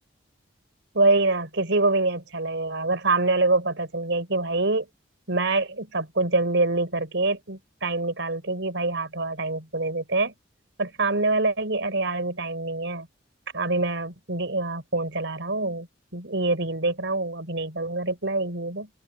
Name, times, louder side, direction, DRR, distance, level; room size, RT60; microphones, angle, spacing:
voice 1, 0.9-4.9 5.3-10.3 10.8-13.1 13.5-15.9 16.1-18.9, right 2 dB, 70° right, 4.2 m, -25 dB
open air
head